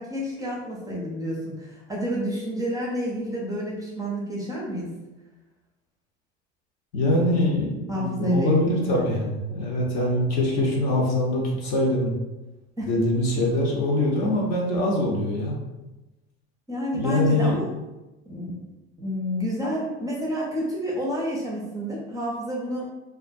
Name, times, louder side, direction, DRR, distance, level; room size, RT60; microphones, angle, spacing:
voice 1, 0.0-4.9 7.9-9.2 12.8-12.9 16.7-17.6 18.3-18.6 19.0-22.8, equal, 10° right, -5 dB, 0.6 m, -29 dB
voice 2, 6.9-12.1 12.8-15.6 16.9-17.6, left 1 dB, 55° left, -2 dB, 0.8 m, -23 dB
2.3 x 2.1 x 2.6 m, 1.1 s
hypercardioid pair, 90°, 33 cm